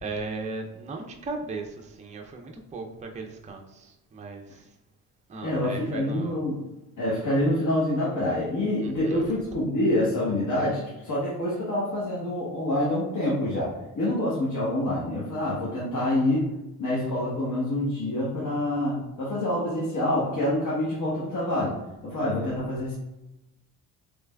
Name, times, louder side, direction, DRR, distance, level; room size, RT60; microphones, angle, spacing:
voice 1, 0.0-4.4 5.3-6.4 8.8-9.2, right 3 dB, 20° right, 3 dB, 0.4 m, -37 dB
voice 2, 5.4-6.6 7.0-16.5 16.8-21.8 22.0-22.9, left 1 dB, 50° left, -7 dB, 1.1 m, -26 dB
3.2 x 3.2 x 2.2 m, 0.97 s
supercardioid pair, 70°, 41 cm